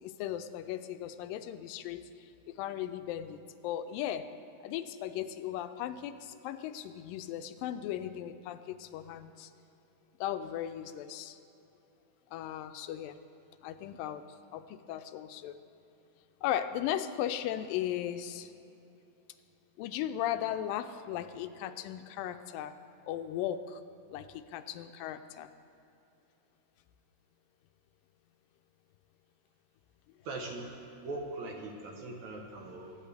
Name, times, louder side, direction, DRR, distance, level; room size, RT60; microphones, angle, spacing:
voice 1, 0.0-3.4 3.6-4.3 4.6-9.5 10.2-11.4 12.3-13.2 13.6-15.6 16.4-18.5 19.8-22.7 23.1-23.8 24.1-25.5, left 11 dB, 85° left, 10 dB, 2.2 m, -37 dB
voice 2, 30.3-30.7 31.0-33.0, right 2 dB, 65° right, 1 dB, 2.1 m, -40 dB
22.0 x 9.6 x 3.4 m, 2.9 s
omnidirectional pair, 4.0 m